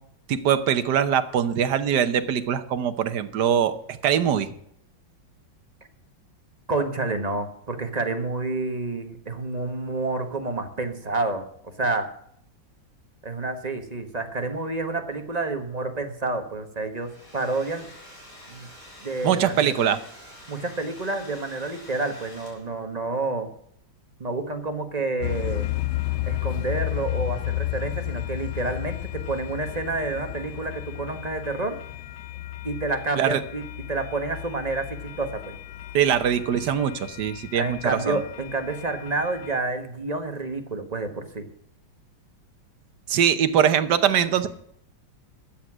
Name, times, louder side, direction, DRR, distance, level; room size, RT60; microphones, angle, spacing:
voice 1, 0.3-3.7 4.0-4.5 19.2-20.0 33.2-33.4 35.9-37.8 38.1-38.2 43.1-44.5, right 9 dB, 65° right, 10 dB, 1.5 m, -22 dB
voice 2, 6.7-12.1 13.2-17.9 18.5-18.7 19.0-19.7 20.5-23.5 24.2-25.7 26.3-31.8 32.6-35.6 37.5-41.5, right 3 dB, 25° right, 6 dB, 1.1 m, -29 dB
Domestic sounds home sounds, 16.8-22.9, equal, 45° left, 4.5 m, -47 dB
sound 1, 25.2-39.6, left 16 dB, 85° left, 1.4 m, -33 dB
13.0 x 8.1 x 6.2 m, 0.69 s
omnidirectional pair, 2.1 m